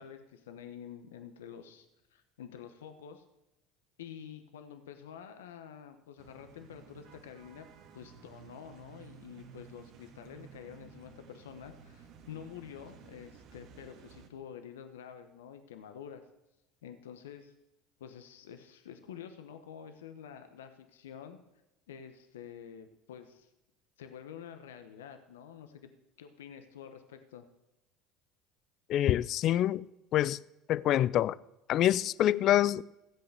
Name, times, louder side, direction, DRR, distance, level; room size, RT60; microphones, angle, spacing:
voice 1, 0.0-1.9 2.1-3.2 4.0-7.7 7.9-16.2 16.8-17.5 18.0-21.4 21.9-23.5 24.0-25.9 26.2-27.5, left 8 dB, 85° left, 8 dB, 1.0 m, -48 dB
sound 1, 6.2-14.3, right 7 dB, 60° right, 1.7 m, -54 dB
voice 2, 28.9-29.9 30.1-30.4 30.7-31.4 31.7-32.8, left 12 dB, 55° left, 20 dB, 0.4 m, -26 dB
15.5 x 7.9 x 6.8 m, 0.92 s
hypercardioid pair, 75°, 0 cm